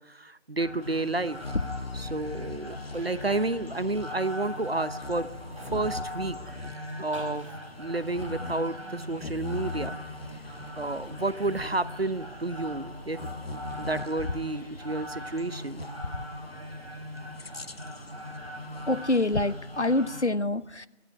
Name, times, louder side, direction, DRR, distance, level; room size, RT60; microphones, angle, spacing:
voice 1, 0.0-1.4 1.9-5.3 5.6-6.6 7.0-7.5 7.8-10.0 10.8-15.8, right 2 dB, 60° right, 15 dB, 1.1 m, -31 dB
sound 1, 0.6-20.2, equal, 30° right, 5.3 m, -40 dB
Bird vocalization bird call bird song, 0.8-20.3, left 3 dB, 60° left, 0.9 m, -40 dB
voice 2, 18.9-20.9, left 2 dB, 85° left, 14 dB, 1.3 m, -26 dB
22.5 x 14.0 x 9.7 m, 0.93 s
figure-of-eight pair, 175°, 34 cm